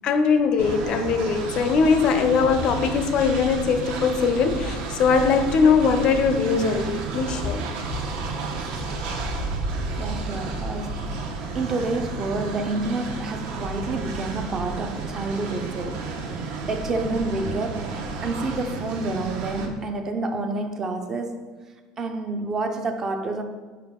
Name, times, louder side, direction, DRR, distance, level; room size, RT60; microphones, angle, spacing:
voice 1, 0.0-7.6, left 5 dB, 40° left, 0.4 m, -21 dB
Train, 0.6-19.7, right 3 dB, 65° right, 0.8 m, -32 dB
voice 2, 10.0-16.1 16.4-17.9 18.2-21.5 22.0-23.4, right 2 dB, 25° right, 0.4 m, -29 dB
5.7 x 4.8 x 3.6 m
cardioid pair, 165°, 2 cm